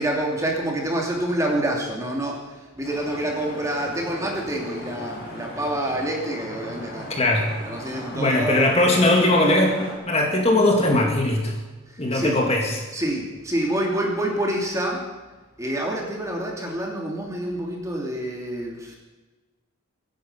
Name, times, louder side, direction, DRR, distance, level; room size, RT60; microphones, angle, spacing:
voice 1, 0.0-7.1 7.6-8.7 11.9-12.4 12.9-15.0 15.6-19.0, right 1 dB, 15° right, -1 dB, 2.7 m, -27 dB
Vehicle horn car horn honking / Traffic noise roadway noise, 2.8-9.9, left 1 dB, 45° left, 5.5 m, -37 dB
voice 2, 7.1-7.5 8.1-9.8 10.1-11.6 12.0-12.8, left 1 dB, 30° left, 1 dB, 2.0 m, -20 dB
23.5 x 10.5 x 5.6 m, 1.2 s
head